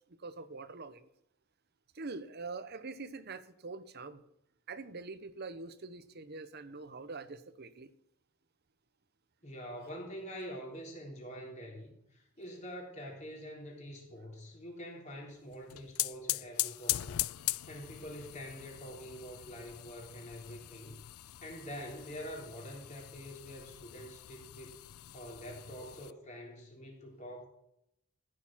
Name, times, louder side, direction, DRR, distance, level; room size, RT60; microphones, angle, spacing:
voice 1, 0.1-1.1 1.9-4.2 4.7-7.9, right 3 dB, 50° right, 13 dB, 0.9 m, -44 dB
voice 2, 9.4-21.0 21.4-24.7 25.1-27.5, equal, 35° left, -1 dB, 3.6 m, -46 dB
sound 1, 15.5-26.1, left 17 dB, 75° left, 0.4 m, -40 dB
14.0 x 6.6 x 7.3 m, 0.77 s
head